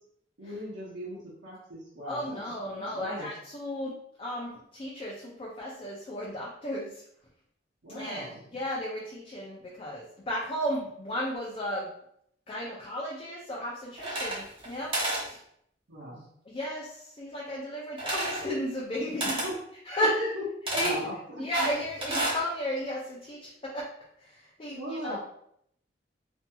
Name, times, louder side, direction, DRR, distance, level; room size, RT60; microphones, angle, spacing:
voice 1, 0.4-2.4 2.7-3.3 7.8-8.4 15.9-16.2 19.4-19.6 20.0-20.5 20.7-21.5 24.7-25.2, equal, 80° right, -8 dB, 0.8 m, -38 dB
voice 2, 2.1-3.9 4.2-6.9 7.9-11.9 12.5-14.9 15.2-15.4 16.5-16.9 17.2-19.4 19.9-20.2 20.7-21.0 21.4-23.8 24.6-25.2, equal, 30° left, -5 dB, 0.4 m, -34 dB
sound 1, 14.0-14.7 14.9-15.3 18.0-18.5 19.2-19.5 20.7-21.0 21.5-22.4, right 1 dB, 30° right, 0.8 m, -30 dB
2.7 x 2.6 x 2.3 m, 0.71 s
head